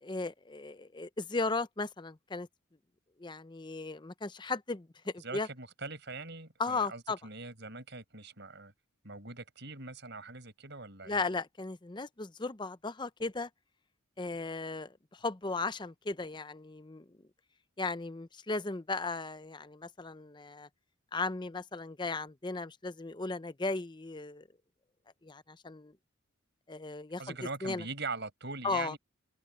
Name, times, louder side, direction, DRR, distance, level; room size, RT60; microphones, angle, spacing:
voice 1, 0.0-2.5 3.2-5.5 6.6-7.2 11.1-13.5 14.2-17.0 17.8-20.7 21.1-24.5 25.2-25.9 26.7-27.2 27.6-27.8 28.6-29.0, left 3 dB, 20° left, 0.6 m, -36 dB
voice 2, 5.2-8.7 9.0-11.2 27.2-29.0, right 3 dB, 55° right, 6.4 m, -42 dB
head